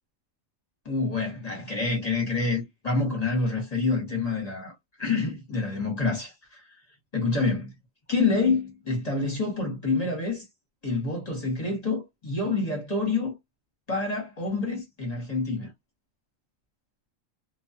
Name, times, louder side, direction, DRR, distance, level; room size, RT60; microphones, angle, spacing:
voice 1, 0.8-4.7 5.0-6.8 7.1-7.7 8.1-10.4 10.8-13.3 13.9-15.7, left 3 dB, 35° left, 0.9 m, -27 dB
2.3 x 2.3 x 2.6 m
omnidirectional pair, 1.4 m